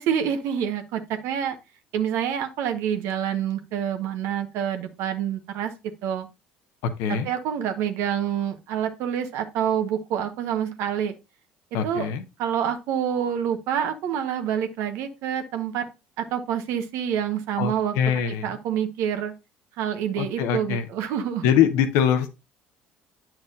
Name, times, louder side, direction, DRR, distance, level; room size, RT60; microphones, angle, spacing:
voice 1, 0.0-1.6 1.9-5.7 6.0-6.3 7.1-11.1 11.8-12.1 12.4-15.9 16.2-18.0 18.4-19.3 19.8-21.5, right 9 dB, 65° right, 1.1 m, -27 dB
voice 2, 6.8-7.3 11.7-12.2 17.6-18.5 20.2-20.8 21.4-22.4, left 8 dB, 70° left, 0.9 m, -23 dB
8.9 x 5.9 x 2.5 m
hypercardioid pair, 60°, 5 cm